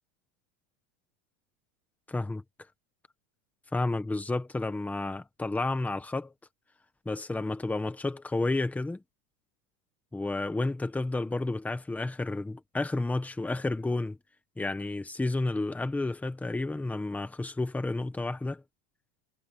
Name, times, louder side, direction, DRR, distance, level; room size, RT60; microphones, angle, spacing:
voice 1, 2.1-2.4 3.7-6.3 7.0-9.0 10.1-14.2 14.6-18.6, left 2 dB, 5° left, 1.1 m, -31 dB
supercardioid pair, 165°, 48 cm